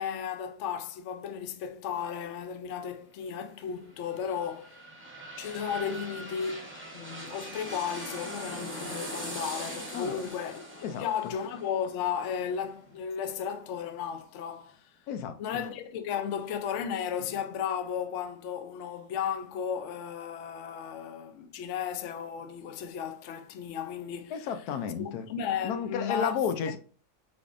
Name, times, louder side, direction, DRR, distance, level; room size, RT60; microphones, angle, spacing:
voice 1, 0.0-4.9 5.4-14.9 15.4-24.4 25.0-26.3 26.6-26.7, left 8 dB, 65° left, 0.8 m, -34 dB
sound 1, 3.8-13.5 13.9-14.0, right 1 dB, 10° right, 0.7 m, -42 dB
voice 2, 24.3-25.3 25.6-26.8, left 7 dB, 80° left, 1.1 m, -32 dB
4.9 x 3.5 x 2.5 m
omnidirectional pair, 1.6 m